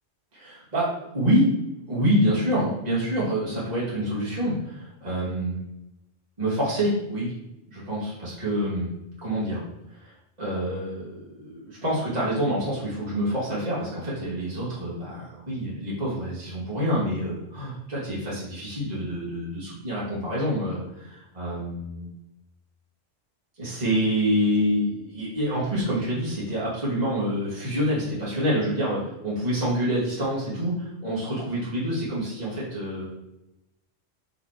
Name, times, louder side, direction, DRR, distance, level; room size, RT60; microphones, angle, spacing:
voice 1, 0.3-1.5 1.9-5.6 6.4-7.3 7.7-8.9 9.2-9.6 9.9-22.1 23.6-33.1, equal, 35° right, -8 dB, 2.3 m, -27 dB
8.2 x 5.4 x 3.0 m, 0.93 s
omnidirectional pair, 1.3 m